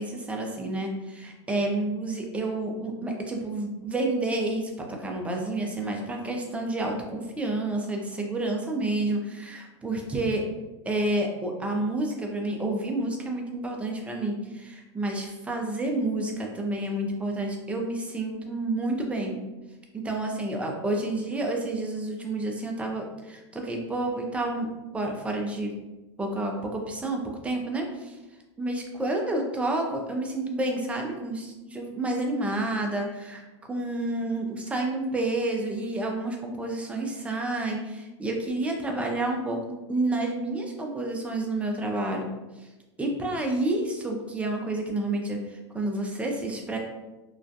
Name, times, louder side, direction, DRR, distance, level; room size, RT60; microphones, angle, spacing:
voice 1, 0.0-10.4 10.8-19.4 19.9-25.7 26.2-28.2 28.6-42.3 42.6-42.7 43.0-46.8, right 2 dB, 10° right, 1 dB, 0.3 m, -29 dB
2.4 x 2.2 x 2.5 m, 1.1 s
hypercardioid pair, 120°, 15 cm